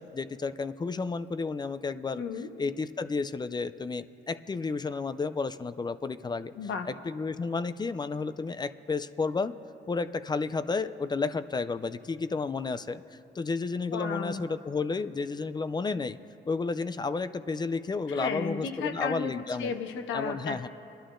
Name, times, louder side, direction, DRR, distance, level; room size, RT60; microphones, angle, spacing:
voice 1, 0.0-2.2 2.6-6.5 6.9-9.5 9.9-13.0 13.4-16.2 16.4-19.7 20.1-20.7, left 4 dB, 20° left, 13 dB, 0.3 m, -32 dB
voice 2, 2.2-2.5 6.6-6.9 13.9-14.4 18.1-20.7, left 5 dB, 75° left, 7 dB, 0.9 m, -34 dB
25.0 x 11.5 x 2.5 m, 2.8 s
cardioid pair, 90°, 20 cm